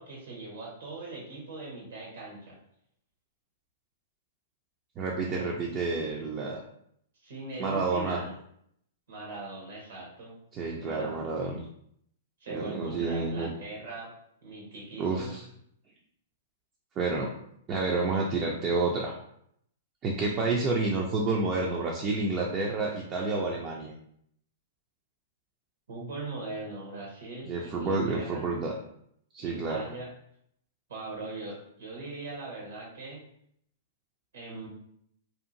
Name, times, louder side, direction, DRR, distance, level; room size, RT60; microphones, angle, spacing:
voice 1, 0.0-2.6 7.2-8.3 9.1-10.4 10.8-11.4 12.4-14.1 14.4-15.4 25.9-28.4 29.4-30.1 30.9-33.3 34.3-34.7, right 2 dB, 80° right, -2 dB, 1.0 m, -40 dB
voice 2, 5.0-6.6 7.6-8.2 10.5-11.6 12.5-13.5 15.0-15.4 17.0-17.3 17.7-19.1 20.0-23.9 27.5-28.7 29.3-29.8, right 3 dB, 30° right, -2 dB, 0.4 m, -29 dB
2.7 x 2.4 x 2.5 m, 0.70 s
hypercardioid pair, 120°, 0 cm